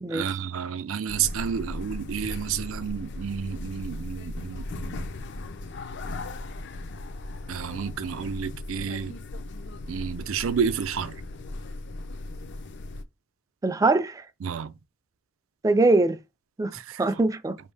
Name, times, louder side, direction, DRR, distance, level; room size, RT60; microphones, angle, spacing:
voice 1, 0.1-5.1 7.5-9.2 9.9-11.2 14.4-14.7 16.7-17.1, right 7 dB, 75° right, 0.4 m, -30 dB
sound 1, 1.1-13.0, left 2 dB, 60° left, 0.5 m, -37 dB
voice 2, 13.6-14.3 15.6-16.2 16.6-17.6, right 2 dB, 15° right, 0.4 m, -22 dB
5.1 x 2.7 x 3.3 m
head